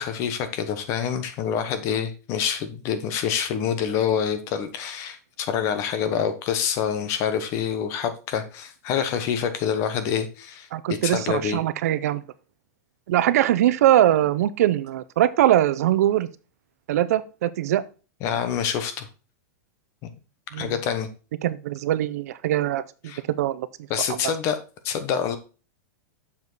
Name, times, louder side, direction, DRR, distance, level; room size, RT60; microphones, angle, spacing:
voice 1, 0.0-11.6 18.2-19.1 20.0-20.1 20.6-21.1 23.1-23.2 23.9-24.6 24.8-25.4, left 8 dB, 35° left, 10 dB, 1.0 m, -26 dB
voice 2, 10.7-12.2 13.1-16.3 16.9-17.8 20.5-20.7 21.4-23.7, right 12 dB, 65° right, 15 dB, 0.6 m, -22 dB
6.9 x 5.2 x 3.9 m, 0.34 s
supercardioid pair, 165°, 9 cm